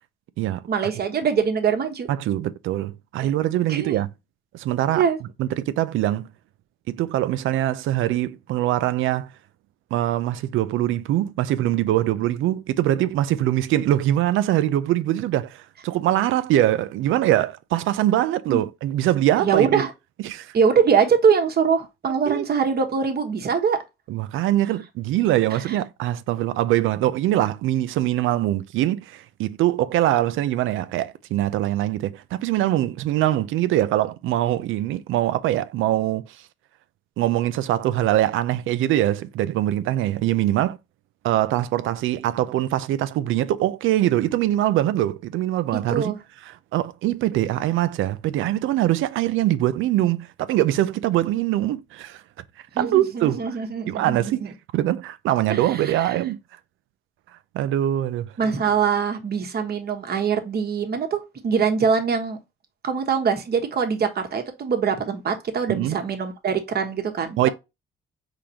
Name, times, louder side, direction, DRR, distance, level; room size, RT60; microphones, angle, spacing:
voice 1, 0.7-2.1 3.2-3.3 3.7-4.0 4.9-5.2 18.5-18.6 19.4-19.9 20.5-23.8 25.5-25.8 45.9-46.2 52.7-54.5 55.5-56.2 58.4-62.4 62.8-67.4, right 6 dB, 55° right, 1.2 m, -23 dB
voice 2, 2.1-4.1 4.5-5.0 5.4-6.3 6.9-9.3 9.9-19.8 20.2-20.5 22.3-22.4 24.1-36.4 37.2-40.8 41.2-46.1 46.5-52.2 52.8-53.5 53.9-56.4 57.5-58.3 65.7-66.0 67.4-67.5, right 13 dB, 85° right, 0.5 m, -23 dB
5.0 x 3.8 x 2.8 m
cardioid pair, 90°, 20 cm